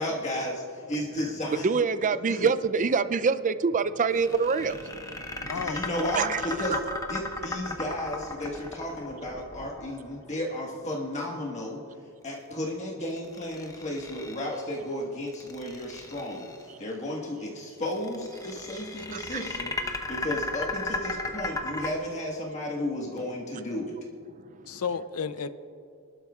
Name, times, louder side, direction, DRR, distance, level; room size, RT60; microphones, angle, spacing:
voice 1, 0.0-1.8 2.3-2.5 5.3-6.8 7.1-11.8 12.2-16.5 16.8-23.9, left 1 dB, 35° left, -2 dB, 1.5 m, -33 dB
voice 2, 1.2-5.8 6.1-6.4 6.7-7.0 16.7-16.8 19.1-19.5 24.3-24.8, right 5 dB, 35° right, 13 dB, 0.4 m, -27 dB
sound 1, 4.1-10.3 13.2-14.7 15.3-16.6 17.9-21.9, left 2 dB, 15° left, 0.8 m, -35 dB
voice 3, 5.5-5.9 24.7-25.5, left 6 dB, 85° left, 13 dB, 0.6 m, -32 dB
28.0 x 12.0 x 2.4 m, 2.4 s
head